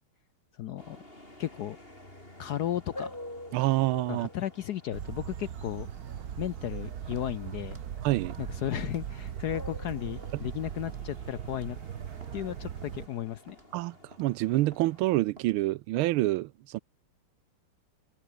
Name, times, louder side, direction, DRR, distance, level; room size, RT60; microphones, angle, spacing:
voice 1, 0.6-1.0 1.4-1.8 2.4-3.1 4.1-5.9 6.4-7.8 8.4-11.8 12.3-13.6, left 12 dB, 70° left, 1.0 m, -34 dB
sound 1, 0.8-15.2, left 1 dB, 25° left, 8.3 m, -49 dB
voice 2, 3.5-4.3 8.0-8.4 13.7-16.8, right 17 dB, 80° right, 1.4 m, -27 dB
sound 2, 4.9-13.1, right 9 dB, 50° right, 1.4 m, -39 dB
Walk footsteps, 7.1-7.3 7.7-7.9 8.3-8.5 8.8-9.1 9.5-9.7 10.2-10.4 10.9-11.1 11.5-11.7 12.2-12.3 12.8-13.0 13.5-13.7 14.1-14.3 14.7-14.9 15.4-15.6 16.0-16.1, right 2 dB, 25° right, 3.5 m, -53 dB
open air
omnidirectional pair, 2.3 m